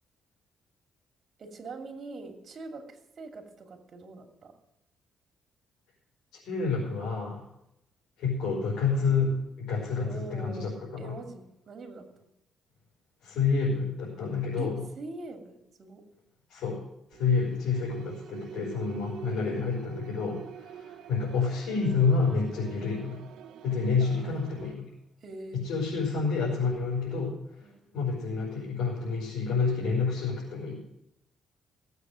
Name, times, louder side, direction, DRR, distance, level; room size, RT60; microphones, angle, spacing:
voice 1, 1.4-4.5 10.0-12.1 14.6-14.7 15.0-16.0 19.1-19.7 24.0-24.3 25.2-25.6 27.6-27.8, right 3 dB, 50° right, 4 dB, 2.7 m, -43 dB
voice 2, 6.4-7.4 8.2-11.1 13.2-14.8 16.5-16.8 17.1-23.3 23.6-24.8 25.5-30.8, left 4 dB, 80° left, -5 dB, 5.0 m, -29 dB
sound 1, 17.1-24.7, right 8 dB, 80° right, 0.9 m, -46 dB
16.5 x 8.2 x 6.4 m, 0.83 s
cardioid pair, 90°, 0 cm